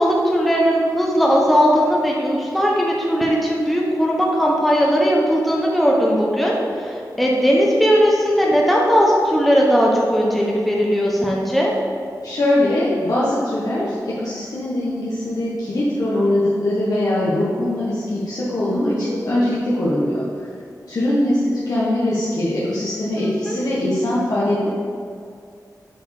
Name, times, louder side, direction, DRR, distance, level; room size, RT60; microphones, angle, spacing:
voice 1, 0.0-11.7 23.2-23.6, equal, ahead, -3 dB, 1.1 m, -18 dB
voice 2, 12.2-20.2 20.9-24.7, left 1 dB, 65° left, -8 dB, 1.3 m, -21 dB
7.8 x 4.5 x 4.9 m, 2.3 s
wide cardioid pair, 90°, 7 cm